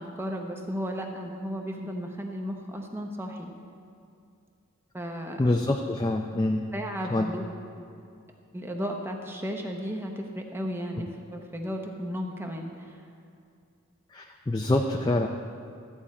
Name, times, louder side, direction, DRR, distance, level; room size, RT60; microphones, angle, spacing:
voice 1, 0.0-3.5 4.9-5.4 6.7-7.5 7.8-7.9 8.5-13.0, equal, 10° right, 2 dB, 0.8 m, -34 dB
voice 2, 5.4-6.6 7.1-7.3 14.1-15.3, left 2 dB, 20° left, 2 dB, 0.4 m, -25 dB
13.5 x 8.5 x 4.2 m, 2.4 s
head